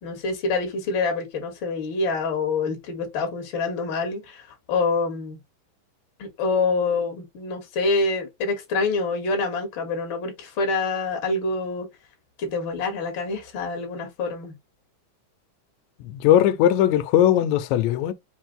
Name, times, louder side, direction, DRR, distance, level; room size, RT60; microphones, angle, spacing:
voice 1, 0.0-5.4 6.2-11.9 12.4-14.5, left 3 dB, 45° left, 1.8 m, -26 dB
voice 2, 16.0-18.1, left 11 dB, 90° left, 1.7 m, -19 dB
5.3 x 2.6 x 3.7 m
omnidirectional pair, 3.9 m